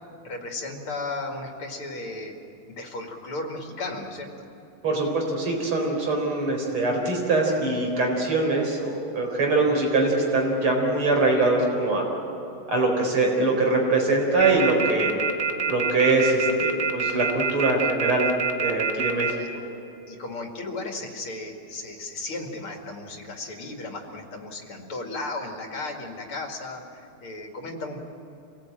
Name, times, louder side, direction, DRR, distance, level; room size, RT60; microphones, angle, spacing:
voice 1, 0.2-2.4 2.7-4.3 9.5-9.9 19.3-19.5 20.1-28.0, left 2 dB, 90° left, 3 dB, 3.1 m, -35 dB
voice 2, 4.8-12.1 12.7-15.1 15.7-18.3 18.6-19.3, right 2 dB, 90° right, 1 dB, 5.1 m, -23 dB
sound 1, 14.4-19.3, right 6 dB, 40° right, 2.2 m, -25 dB
26.0 x 18.5 x 9.0 m, 2.9 s
omnidirectional pair, 2.3 m